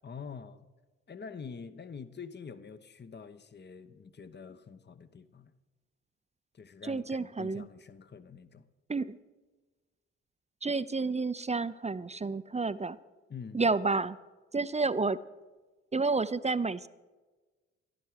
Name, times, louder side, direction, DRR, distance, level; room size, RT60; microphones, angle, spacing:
voice 1, 0.0-0.7 1.1-5.5 6.5-8.7 13.3-13.6, left 6 dB, 35° left, 12 dB, 1.0 m, -46 dB
voice 2, 6.8-7.7 8.9-9.2 10.6-13.0 13.5-14.2 14.5-15.2 15.9-16.9, right 3 dB, 20° right, 15 dB, 0.6 m, -30 dB
15.0 x 11.5 x 4.8 m, 1.2 s
hypercardioid pair, 45°, 32 cm